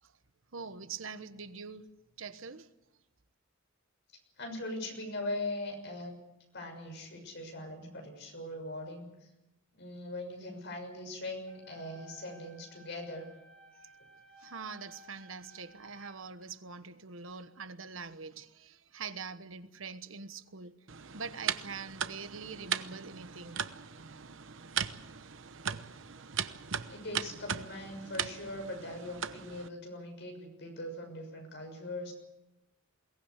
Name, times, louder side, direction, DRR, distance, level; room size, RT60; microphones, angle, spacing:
voice 1, 0.5-1.9 2.2-2.7 13.8-13.9 14.4-20.8 21.1-23.6, right 5 dB, 85° right, 1.3 m, -44 dB
voice 2, 4.4-6.1 6.5-9.3 9.7-13.3 26.9-32.1, left 1 dB, 60° left, 6.5 m, -41 dB
sound 1, 11.5-16.4, equal, 5° left, 4.0 m, -57 dB
sound 2, 20.9-29.7, right 8 dB, 70° right, 1.0 m, -38 dB
22.5 x 18.5 x 8.3 m
head